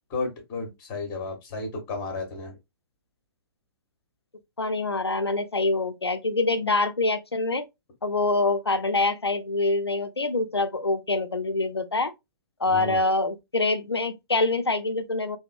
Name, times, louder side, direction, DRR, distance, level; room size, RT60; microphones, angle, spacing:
voice 1, 0.1-2.6 12.7-13.0, left 3 dB, 30° left, 1.1 m, -33 dB
voice 2, 4.6-7.7 8.0-12.1 12.6-15.4, left 2 dB, 90° left, 0.4 m, -25 dB
2.9 x 2.2 x 2.4 m
figure-of-eight pair, 120°, 13 cm